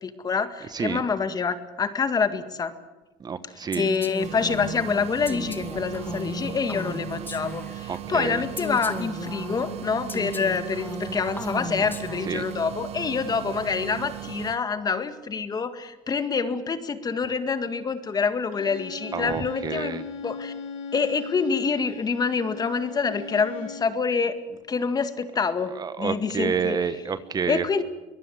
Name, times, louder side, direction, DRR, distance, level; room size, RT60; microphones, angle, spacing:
voice 1, 0.0-2.7 3.5-20.5 20.9-26.8 27.5-27.8, left 5 dB, 30° left, 10 dB, 1.8 m, -27 dB
voice 2, 3.2-3.9 7.9-8.4 12.3-12.4 19.1-20.0 25.8-27.8, right 6 dB, 35° right, 13 dB, 1.2 m, -29 dB
Female speech woman speaking, 3.7-8.0 8.6-12.5, left 2 dB, 15° left, 2.3 m, -36 dB
sound 1, 4.2-14.6, right 14 dB, 55° right, 1.1 m, -37 dB
Bowed string instrument, 18.5-24.0, left 5 dB, 75° left, 6.8 m, -38 dB
23.5 x 18.5 x 7.9 m, 1.1 s
supercardioid pair, 95°, 13 cm